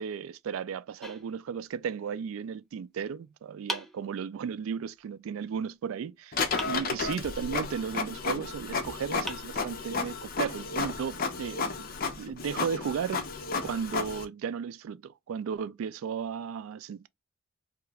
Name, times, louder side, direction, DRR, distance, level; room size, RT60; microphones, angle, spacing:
voice 1, 0.0-13.2 13.6-17.1, right 7 dB, 80° right, 0.3 m, -35 dB
sound 1, 1.0-2.0 3.7-4.7 6.6-7.5 8.7-8.8 9.3-10.2, left 1 dB, ahead, 0.6 m, -42 dB
Printer, 6.3-14.2, left 4 dB, 45° left, 0.7 m, -33 dB
2.9 x 2.3 x 3.3 m
head